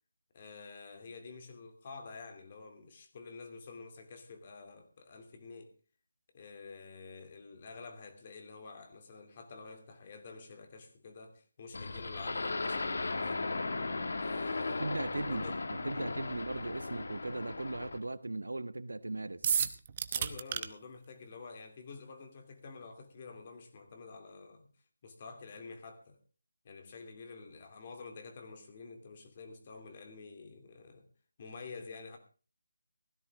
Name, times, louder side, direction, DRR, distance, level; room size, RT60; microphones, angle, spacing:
voice 1, 0.3-5.7 6.3-13.5 14.2-14.9 15.2-15.6 15.9-16.4 20.1-24.7 25.0-26.2 26.6-31.1 31.4-32.2, left 4 dB, 30° left, 2.9 m, -49 dB
sound 1, 11.7-18.0, left 3 dB, 60° left, 2.3 m, -36 dB
voice 2, 14.8-19.5, right 2 dB, 90° right, 1.2 m, -38 dB
sound 2, 19.4-20.7, right 8 dB, 25° right, 0.9 m, -30 dB
16.5 x 14.0 x 3.7 m
figure-of-eight pair, 170°, 0 cm